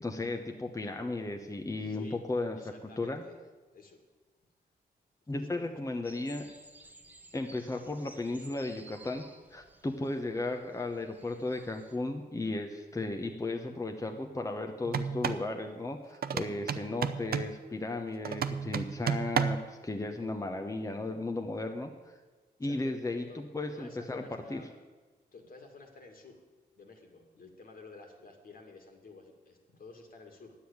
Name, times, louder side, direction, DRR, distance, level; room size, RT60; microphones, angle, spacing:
voice 1, 0.0-2.6 3.0-3.2 5.3-6.5 7.3-9.2 9.5-21.9 22.6-24.2 24.5-24.6, left 2 dB, 20° left, 4 dB, 1.0 m, -35 dB
voice 2, 1.8-2.2 2.6-3.4 3.7-4.0 5.3-5.5 22.6-22.9 23.3-23.4 23.7-24.7 25.3-26.4 26.8-30.5, left 3 dB, 60° left, 3 dB, 2.3 m, -52 dB
sound 1, 6.0-12.0, right 1 dB, 10° right, 1.3 m, -55 dB
sound 2, 14.9-15.5 16.2-17.6 18.2-19.7, right 7 dB, 65° right, 0.7 m, -32 dB
10.0 x 8.0 x 8.7 m, 1.3 s
cardioid pair, 75°, 17 cm